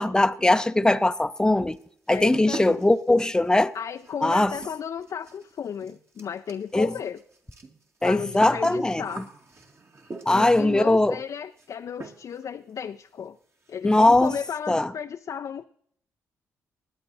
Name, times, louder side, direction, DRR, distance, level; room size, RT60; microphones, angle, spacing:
voice 1, 0.0-1.8 2.1-3.7 4.2-4.5 6.7-6.9 8.0-9.0 10.3-11.2 13.8-14.3 14.7-14.9, left 2 dB, 10° left, 0.7 m, -20 dB
sound 1, 0.9-1.4 1.7-10.6 11.6-11.7 12.0-12.5 12.8-12.9 13.2-13.3 13.6-13.8 14.1-14.6, right 3 dB, 40° right, 1.9 m, -43 dB
voice 2, 2.1-2.8 3.7-7.2 8.0-9.3 10.3-13.4 13.7-15.7, left 8 dB, 55° left, 0.5 m, -34 dB
20.0 x 8.8 x 4.1 m
supercardioid pair, 50°, 7 cm